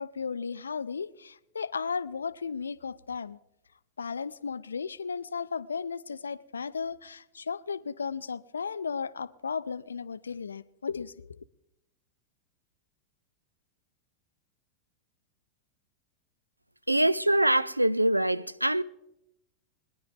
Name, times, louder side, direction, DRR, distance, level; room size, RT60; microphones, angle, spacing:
voice 1, 0.0-3.4 4.0-11.3, left 5 dB, 75° left, 0.5 m, -35 dB
voice 2, 16.9-18.8, right 1 dB, 85° right, 0.4 m, -24 dB
22.0 x 10.5 x 3.8 m
figure-of-eight pair, 90°, 0 cm